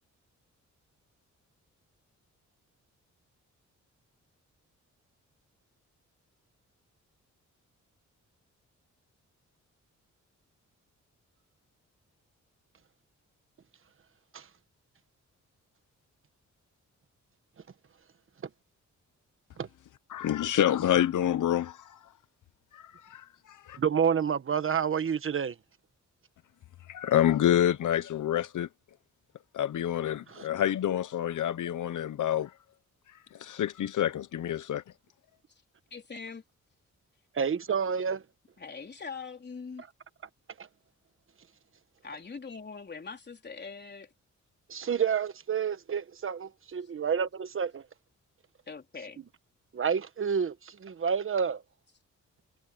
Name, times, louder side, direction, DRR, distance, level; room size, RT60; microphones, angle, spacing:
voice 1, 20.1-22.0 22.7-23.8 26.9-28.7 29.5-32.5 33.4-34.8, left 11 dB, 80° left, 0.9 m, -28 dB
voice 2, 23.8-25.5 30.3-30.5 37.3-38.2 44.7-47.8 49.7-51.6, right 7 dB, 45° right, 1.2 m, -29 dB
voice 3, 35.9-36.4 38.6-39.8 42.0-44.1 48.7-49.3, left 5 dB, 35° left, 3.5 m, -42 dB
wide cardioid pair, 140°, 30 cm